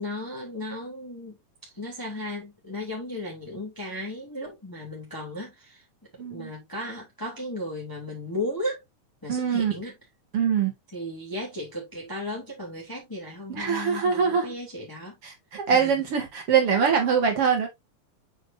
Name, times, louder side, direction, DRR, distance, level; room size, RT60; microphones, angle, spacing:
voice 1, 0.0-1.4 1.6-5.8 6.3-8.8 9.2-9.9 10.9-15.1 15.7-15.9, left 1 dB, 5° left, 2.8 m, -35 dB
voice 2, 6.2-6.5 9.3-9.7 10.3-10.7 13.5-14.5 15.2-17.7, right 6 dB, 50° right, 2.8 m, -23 dB
7.8 x 6.3 x 2.7 m
omnidirectional pair, 3.5 m